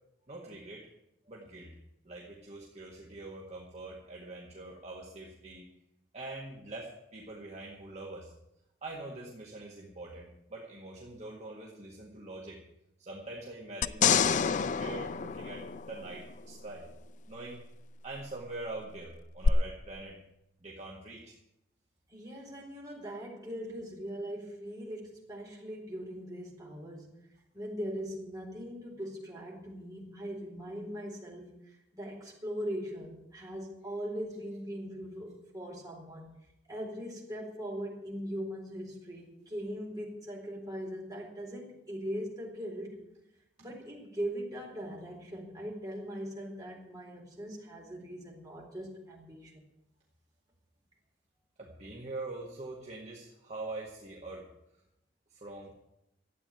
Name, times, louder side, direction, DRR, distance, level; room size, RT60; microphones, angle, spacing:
voice 1, 0.3-0.9 1.3-1.7 2.0-5.7 6.1-8.3 8.8-12.6 13.0-16.9 17.3-17.6 18.0-20.2 20.6-21.4 51.6-54.5 55.3-55.7, right 2 dB, 40° right, -2 dB, 1.8 m, -44 dB
sound 1, 13.8-16.3 19.4-19.5, left 6 dB, 45° left, 0.4 m, -27 dB
voice 2, 22.1-27.2 27.5-36.3 36.7-43.0 43.6-49.6, equal, 20° right, -2 dB, 4.2 m, -40 dB
12.5 x 8.6 x 9.1 m, 0.86 s
head